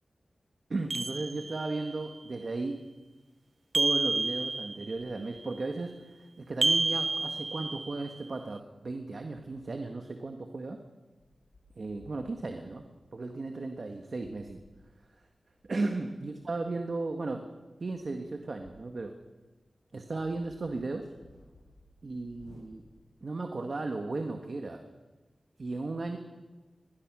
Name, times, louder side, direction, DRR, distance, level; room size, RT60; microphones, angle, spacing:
voice 1, 0.7-2.8 3.7-10.8 11.8-12.8 13.1-14.6 15.2-15.3 15.7-17.5 17.8-19.2 19.9-21.1 22.0-22.8 23.2-24.8 25.6-26.2, right 3 dB, 55° right, 5 dB, 1.6 m, -35 dB
sound 1, 0.9-1.9 3.7-5.0 6.6-8.1, right 3 dB, 40° right, 0.5 m, -30 dB
sound 2, 11.2-13.1 14.2-14.8 15.5-19.0 19.4-19.5 19.9-23.1, left 2 dB, 90° left, 6.5 m, -61 dB
21.0 x 20.5 x 6.2 m, 1.3 s
wide cardioid pair, 75°, 0 cm